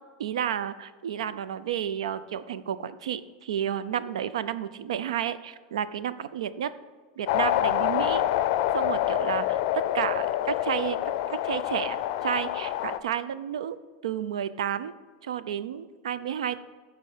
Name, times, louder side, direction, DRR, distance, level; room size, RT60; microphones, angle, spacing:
voice 1, 0.2-6.7 7.2-8.2 8.7-9.6 9.9-11.0 11.3-12.0 12.2-13.8 14.0-14.9 15.2-16.6, right 9 dB, 90° right, 14 dB, 0.5 m, -31 dB
sound 1, 7.3-13.0, left 12 dB, 65° left, 0.5 m, -27 dB
13.0 x 4.7 x 5.0 m, 1.5 s
supercardioid pair, 115°, 3 cm